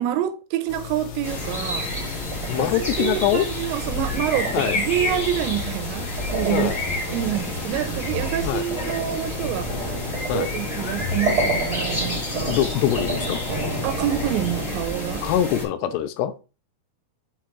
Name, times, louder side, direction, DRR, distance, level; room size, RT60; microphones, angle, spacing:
voice 1, 0.0-1.9 2.6-6.8 7.1-10.0 10.3-12.6 13.8-15.3, right 12 dB, 85° right, 3.0 m, -27 dB
sound 1, 0.7-14.8, left 8 dB, 65° left, 2.8 m, -38 dB
sound 2, 1.2-15.6, left 1 dB, 10° left, 3.1 m, -30 dB
sound 3, 2.0-15.2, right 2 dB, 40° right, 2.0 m, -32 dB
voice 2, 2.5-3.5 4.5-4.8 6.5-6.8 8.4-8.6 10.3-10.5 12.4-13.4 15.2-16.3, left 11 dB, 80° left, 2.7 m, -23 dB
6.5 x 5.8 x 3.0 m
omnidirectional pair, 5.0 m